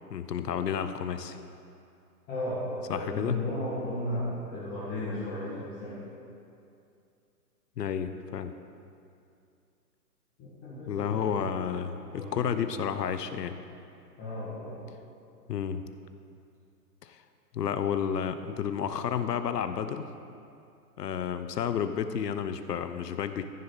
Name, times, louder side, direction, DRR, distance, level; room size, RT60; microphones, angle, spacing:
voice 1, 0.1-1.4 2.9-3.4 7.8-8.5 10.8-13.6 15.5-15.8 17.0-17.2 17.5-20.1 21.0-23.5, left 8 dB, 75° left, 10 dB, 0.8 m, -31 dB
voice 2, 2.3-6.0 10.4-11.8 12.1-12.7 14.2-14.8, left 1 dB, 20° left, -10 dB, 1.9 m, -35 dB
15.0 x 6.6 x 4.0 m, 2.5 s
hypercardioid pair, 150°, 49 cm